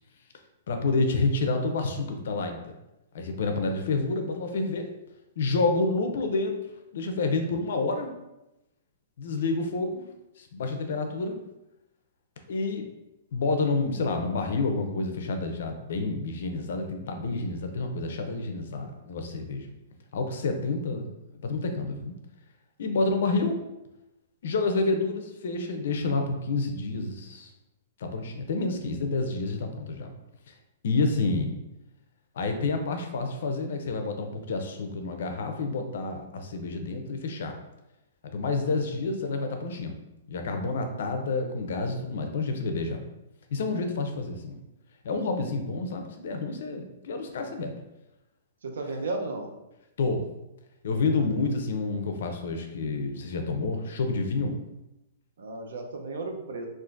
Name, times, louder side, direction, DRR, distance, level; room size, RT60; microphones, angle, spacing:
voice 1, 0.7-2.7 3.1-4.9 5.4-6.6 6.9-8.1 9.2-10.0 10.4-11.4 12.5-12.9 13.3-19.7 20.1-21.1 21.4-22.1 22.8-23.6 24.4-27.5 28.0-30.1 30.5-30.6 30.8-31.5 32.4-37.6 38.3-39.9 40.3-43.0 43.5-44.6 45.0-47.7 50.0-50.2 50.8-54.6, left 3 dB, 60° left, 5 dB, 0.5 m, -29 dB
voice 2, 48.6-49.5 51.1-51.3 55.4-56.7, right 2 dB, 85° right, 3 dB, 0.6 m, -34 dB
3.6 x 2.5 x 2.5 m, 0.94 s
hypercardioid pair, 175°, 0 cm